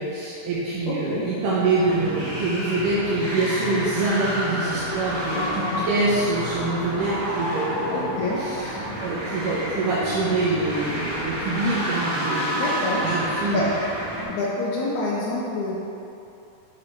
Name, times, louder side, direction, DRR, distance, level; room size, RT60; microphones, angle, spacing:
voice 1, 0.0-8.7 9.0-12.7 13.0-13.6, right 2 dB, 75° right, -8 dB, 2.1 m, -25 dB
voice 2, 0.9-1.3 5.3-5.9 7.9-8.4 12.5-13.0 13.5-13.6 14.3-15.8, left 2 dB, 85° left, -5 dB, 1.7 m, -27 dB
sound 1, 1.3-14.2, equal, 55° right, 1.4 m, -29 dB
7.6 x 4.0 x 4.4 m, 2.8 s
omnidirectional pair, 4.3 m